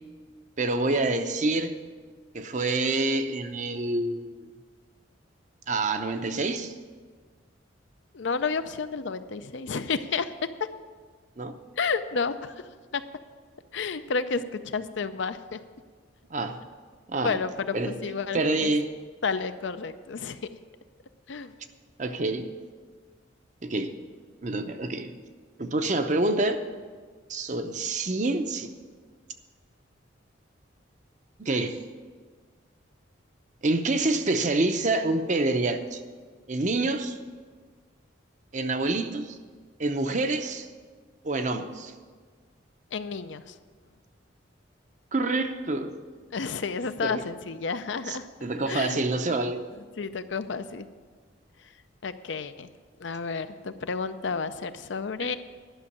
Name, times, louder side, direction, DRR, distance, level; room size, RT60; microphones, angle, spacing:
voice 1, 0.6-1.7 2.3-4.5 5.7-6.7 11.4-11.6 16.3-16.6 17.1-17.4 17.7-18.0 18.3-18.9 22.0-22.5 23.6-23.9 24.4-25.1 25.6-26.6 27.3-28.7 31.4-31.8 33.6-36.0 36.5-37.2 38.5-39.4 39.8-40.7 41.2-41.9 45.1-45.9 47.0-47.2 48.1-49.6, right 2 dB, 40° right, 8 dB, 0.7 m, -27 dB
voice 2, 8.1-10.3 11.8-12.5 12.9-13.0 13.7-15.6 17.2-18.7 19.2-20.4 21.3-21.5 42.9-43.5 46.3-48.3 48.7-49.0 50.0-50.9 52.0-52.7 53.0-55.4, left 5 dB, 70° left, 11 dB, 0.5 m, -31 dB
11.5 x 6.3 x 8.5 m, 1.5 s
head